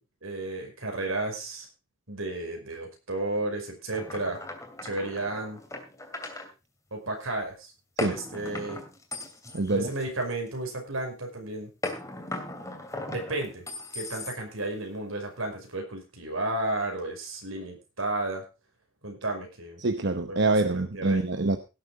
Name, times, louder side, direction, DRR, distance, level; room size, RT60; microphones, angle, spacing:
voice 1, 0.2-1.7 2.1-4.4 4.8-5.6 6.9-7.7 8.0-8.8 9.7-11.7 13.1-13.7 13.9-18.4 19.0-19.8 20.3-21.2, right 2 dB, 80° right, 3 dB, 5.5 m, -33 dB
sound 1, 3.9-6.5 8.0-10.6 11.8-14.7, left 2 dB, 15° left, 2.7 m, -37 dB
voice 2, 9.5-9.9 19.8-21.6, right 2 dB, 55° right, 9 dB, 0.9 m, -25 dB
17.0 x 7.9 x 4.9 m, 0.30 s
head